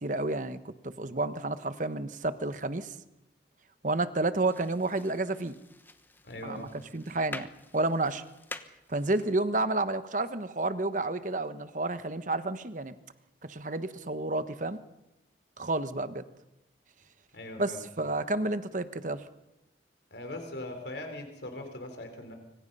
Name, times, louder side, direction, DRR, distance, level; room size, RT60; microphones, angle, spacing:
voice 1, 0.0-2.9 3.8-5.6 6.4-7.5 7.7-8.2 8.9-12.9 13.4-14.8 15.6-16.2 17.6-19.2, right 2 dB, 45° right, 11 dB, 1.2 m, -30 dB
sound 1, 4.5-9.6, left 2 dB, 10° left, 1.0 m, -47 dB
voice 2, 6.2-6.7 17.3-17.8 20.1-22.3, left 1 dB, 75° left, 5 dB, 3.9 m, -40 dB
25.5 x 25.5 x 5.5 m, 0.93 s
head